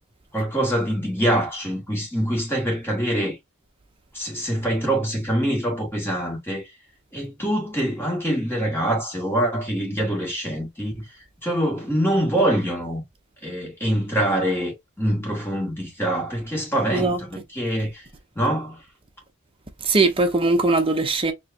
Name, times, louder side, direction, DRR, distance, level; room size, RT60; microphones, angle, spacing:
voice 1, 0.3-3.4 4.1-6.6 7.1-11.0 11.4-13.0 13.4-18.0 18.4-18.8, right 1 dB, 10° left, 2.0 m, -24 dB
voice 2, 19.8-21.3, right 3 dB, 25° right, 0.7 m, -20 dB
4.7 x 3.1 x 2.7 m
head